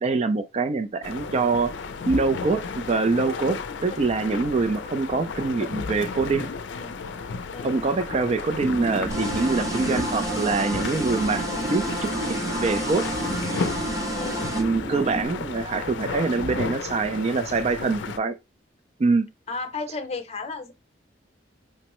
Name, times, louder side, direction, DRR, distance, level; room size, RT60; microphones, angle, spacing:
voice 1, 0.0-1.7 2.1-6.5 7.6-11.4 11.7-12.1 12.5-13.1 14.6-18.4 19.0-19.3, right 4 dB, 35° right, 0.3 m, -24 dB
sound 1, 1.0-18.2, left 5 dB, 85° left, 0.4 m, -33 dB
voice 2, 7.5-7.9 14.1-14.6 19.5-20.7, left 3 dB, 35° left, 0.7 m, -34 dB
sound 2, 8.6-15.3, right 2 dB, 70° right, 1.9 m, -32 dB
sound 3, 9.1-14.6, right 1 dB, 20° right, 0.8 m, -32 dB
5.3 x 2.0 x 3.0 m
head